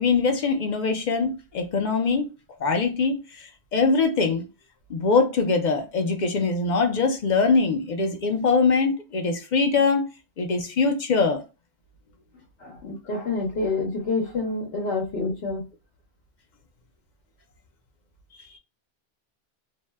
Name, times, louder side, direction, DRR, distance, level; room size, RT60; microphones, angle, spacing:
voice 1, 0.0-2.3 2.6-4.4 4.9-10.1 10.4-11.4, left 4 dB, 55° left, 0.6 m, -22 dB
voice 2, 12.6-15.6, left 3 dB, 75° left, 1.0 m, -28 dB
2.7 x 2.1 x 3.2 m
omnidirectional pair, 1.1 m